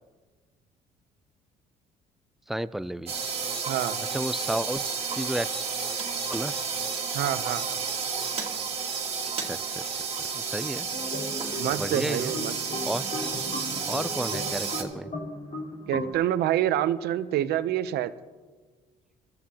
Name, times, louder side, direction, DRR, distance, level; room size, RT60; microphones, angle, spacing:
voice 1, 2.5-3.1 4.1-4.8 5.1-5.6 6.3-6.5 9.4-10.9 11.8-12.3 12.9-13.1 13.9-15.1, right 1 dB, ahead, 16 dB, 0.3 m, -32 dB
sound 1, 3.1-14.8, right 5 dB, 35° right, 1.9 m, -31 dB
voice 2, 3.7-4.0 7.1-7.8 11.6-12.8 15.9-18.1, right 12 dB, 75° right, 13 dB, 0.7 m, -27 dB
sound 2, 10.9-16.1, left 1 dB, 50° left, 4.1 m, -36 dB
23.0 x 13.5 x 2.9 m, 1.4 s
cardioid pair, 110°, 17 cm